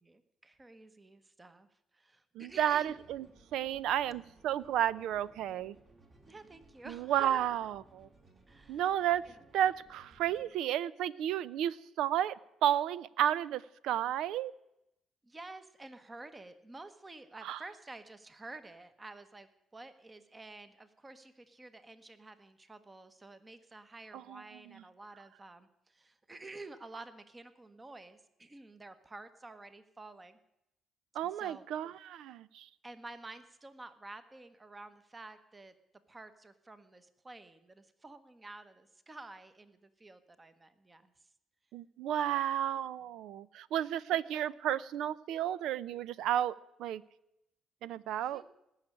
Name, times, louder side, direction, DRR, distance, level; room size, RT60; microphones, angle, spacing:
voice 1, 0.0-1.7 1.9-2.9 6.3-7.7 8.5-8.8 9.2-9.4 15.2-30.4 31.2-31.7 32.8-35.7 36.1-41.1 42.2-42.4 44.1-44.4 48.2-48.5, right 2 dB, 20° right, 11 dB, 1.2 m, -51 dB
voice 2, 2.4-3.3 3.5-5.8 6.9-8.1 8.7-9.2 9.5-12.3 12.6-14.5 17.4-17.6 24.1-24.4 24.7-24.8 31.1-32.7 41.7-47.0 47.8-48.4, right 11 dB, 80° right, 19 dB, 0.6 m, -32 dB
sound 1, 2.5-10.5, right 2 dB, 40° right, 3.1 m, -62 dB
19.0 x 6.5 x 9.8 m, 0.85 s
cardioid pair, 105°, 0 cm